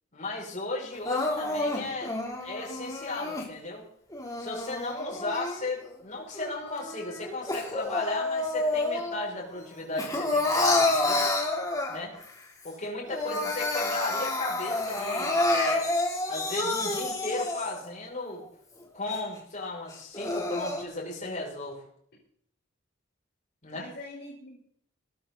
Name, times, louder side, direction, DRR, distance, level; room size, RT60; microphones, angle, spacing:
voice 1, 0.1-2.1 2.4-3.8 4.4-11.2 11.9-12.1 12.6-15.8 16.3-18.4 18.9-21.8 23.6-23.8, left 2 dB, 40° left, -2 dB, 6.8 m, -35 dB
Crying sobbing, 1.0-3.5 4.1-5.9 6.3-9.3 9.6-12.2 12.7-12.8 13.0-17.9 18.4-18.5 19.1-19.2 19.9-20.8, left 2 dB, 20° left, 3.5 m, -29 dB
voice 2, 13.2-13.6 23.7-24.6, left 2 dB, 55° left, -5 dB, 4.8 m, -44 dB
19.0 x 14.0 x 4.2 m, 0.66 s
head